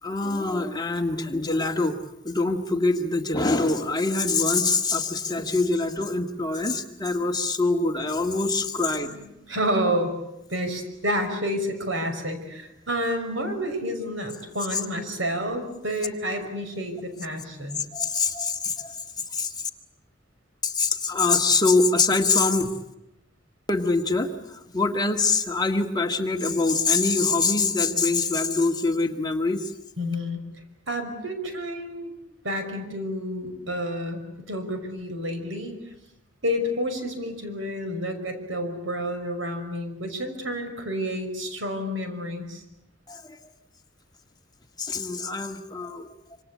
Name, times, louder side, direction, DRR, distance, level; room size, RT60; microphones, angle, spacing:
voice 1, 0.0-2.0 2.2-9.2 17.9-19.0 19.3-19.7 20.6-22.7 23.7-29.7 43.1-43.4 44.8-46.1, left 3 dB, 20° left, 4 dB, 1.8 m, -24 dB
voice 2, 8.7-10.1 10.5-17.8 30.0-30.4 30.9-32.1 32.4-34.2 34.5-35.8 36.4-42.6, equal, 85° right, 7 dB, 5.7 m, -29 dB
26.5 x 26.5 x 8.5 m, 0.86 s
head